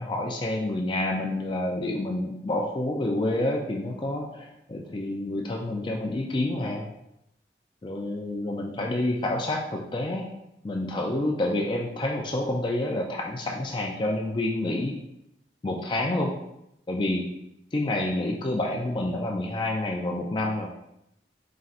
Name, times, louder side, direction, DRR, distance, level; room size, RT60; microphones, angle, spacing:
voice 1, 0.0-6.8 7.8-10.3 10.6-15.0 15.6-16.3 16.9-17.2 17.7-20.7, left 1 dB, 25° left, 0 dB, 0.4 m, -28 dB
4.1 x 3.7 x 2.5 m, 0.81 s
head